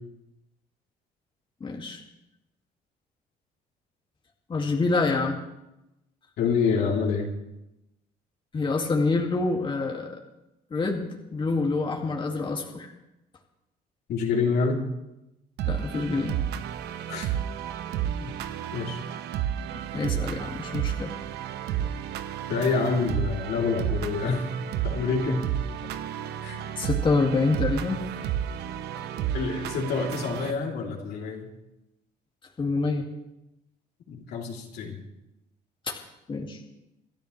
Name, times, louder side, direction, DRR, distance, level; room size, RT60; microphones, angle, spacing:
voice 1, 1.6-2.0 4.5-5.4 8.5-10.2 10.7-11.1 11.3-12.9 15.7-16.3 19.7-21.1 26.8-28.0 32.6-33.0 35.9-36.0 36.3-36.6, left 3 dB, 30° left, 0 dB, 2.3 m, -26 dB
voice 2, 6.4-7.3 14.1-14.8 17.1-17.4 18.2-18.3 18.7-19.0 22.5-24.5 24.8-25.4 26.4-26.6 29.3-31.5 34.1-34.9, left 5 dB, 70° left, -1 dB, 3.5 m, -27 dB
sound 1, 15.6-30.5, right 10 dB, 80° right, 1.0 m, -31 dB
27.5 x 12.5 x 3.3 m, 0.92 s
cardioid pair, 110°, 17 cm